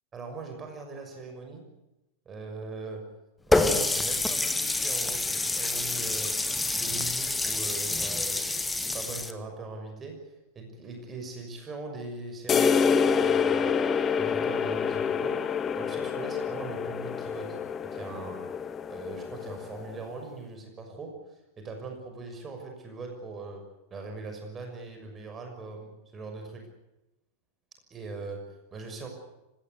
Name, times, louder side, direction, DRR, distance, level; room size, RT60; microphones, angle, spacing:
voice 1, 0.1-1.7 2.2-3.1 3.5-6.4 6.7-8.4 8.9-13.8 14.2-18.5 18.9-23.6 23.9-26.6 27.9-29.1, right 3 dB, 20° right, 4 dB, 6.1 m, -40 dB
Water tap faucet, 3.5-9.3, left 2 dB, 10° left, 1.9 m, -27 dB
sound 1, 12.5-20.0, left 6 dB, 25° left, 1.2 m, -27 dB
25.0 x 17.5 x 9.6 m, 0.96 s
figure-of-eight pair, 90°, 0 cm